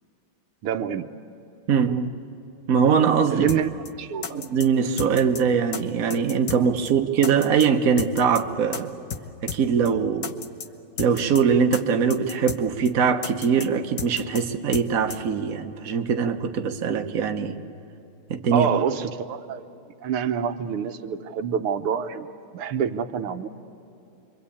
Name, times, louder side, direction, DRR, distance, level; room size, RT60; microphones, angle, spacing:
voice 1, 0.6-1.1 3.3-3.7 4.0-4.3 18.5-19.7 20.0-22.3 22.5-23.5, right 7 dB, 85° right, 9 dB, 1.8 m, -26 dB
voice 2, 1.7-2.1 2.7-3.5 4.3-8.9 9.4-10.4 11.0-17.5 18.3-18.7, right 6 dB, 45° right, 4 dB, 1.4 m, -22 dB
sound 1, 3.5-3.6 3.9-4.0 4.2-4.7 5.0-5.4 5.7-5.8 6.1-6.6 6.9-7.0 7.2-7.7 8.0-8.4 8.7-8.8 9.1-9.2 9.5-9.6 9.9-10.0 10.2-10.7 11.0-11.4 11.7-11.8 12.1-12.6 12.9-13.0 13.2-13.7 14.0-14.4 14.7-14.9 15.1-15.2, left 7 dB, 55° left, 1.6 m, -33 dB
28.0 x 24.5 x 8.5 m, 2.9 s
omnidirectional pair, 2.3 m